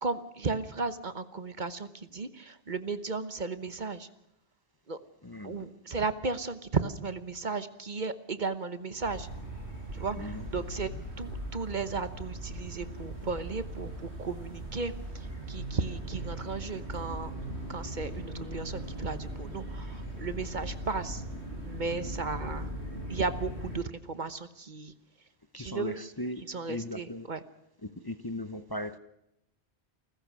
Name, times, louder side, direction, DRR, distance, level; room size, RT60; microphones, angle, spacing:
voice 1, 0.0-4.1 4.9-5.0 5.4-9.3 9.9-10.9 11.2-17.3 17.7-21.2 21.6-22.7 23.1-24.9 25.6-26.0 26.5-27.4, right 4 dB, 45° right, 12 dB, 1.2 m, -35 dB
voice 2, 5.2-5.7 10.1-10.5 10.9-11.0 25.5-27.3 27.8-29.0, left 1 dB, 20° left, 11 dB, 0.8 m, -38 dB
sound 1, 9.0-23.8, right 1 dB, 85° right, 5.5 m, -39 dB
28.5 x 15.0 x 6.2 m, 0.84 s
omnidirectional pair, 1.1 m